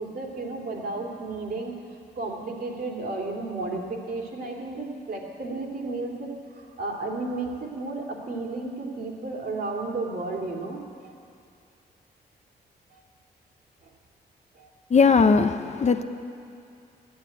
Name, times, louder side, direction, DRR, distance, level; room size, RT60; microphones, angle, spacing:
voice 1, 0.0-1.7 2.2-11.1 12.9-13.0 13.8-13.9 14.5-14.7, right 3 dB, 60° right, -1 dB, 2.7 m, -33 dB
voice 2, 14.9-16.0, left 5 dB, 40° left, 8 dB, 0.7 m, -19 dB
13.5 x 11.0 x 9.1 m, 2.5 s
cardioid pair, 100°, 18 cm